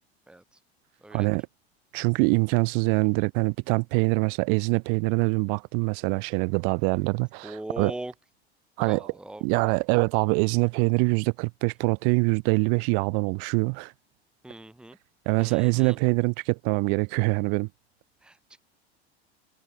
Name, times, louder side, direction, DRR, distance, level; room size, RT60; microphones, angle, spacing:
voice 1, 1.1-1.4 1.9-7.9 8.8-9.1 9.4-13.9 15.3-17.7, right 40 dB or more, 45° right, 0.4 m, -24 dB
voice 2, 7.4-8.1 8.8-9.8 14.4-15.0 15.4-16.0 18.2-18.6, right 1 dB, 5° right, 1.4 m, -40 dB
figure-of-eight pair, 75°, 33 cm